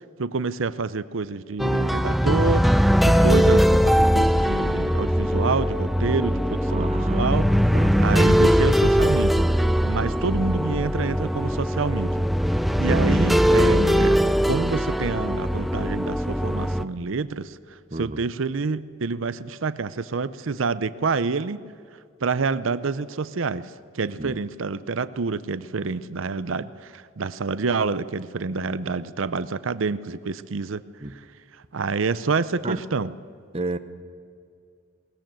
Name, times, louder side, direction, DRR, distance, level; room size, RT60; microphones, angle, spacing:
voice 1, 0.2-7.5 8.0-12.2 12.8-14.2 14.4-21.6 22.2-30.8 31.7-33.1, right 4 dB, 85° right, 15 dB, 0.6 m, -27 dB
sound 1, 1.6-16.9, equal, ahead, 0.5 m, -20 dB
voice 2, 6.6-7.4 7.7-8.0 17.9-18.2 24.2-24.3 31.0-31.1 32.6-32.8 33.5-33.8, right 2 dB, 30° right, 9 dB, 0.9 m, -32 dB
21.0 x 19.0 x 7.6 m, 2.2 s
head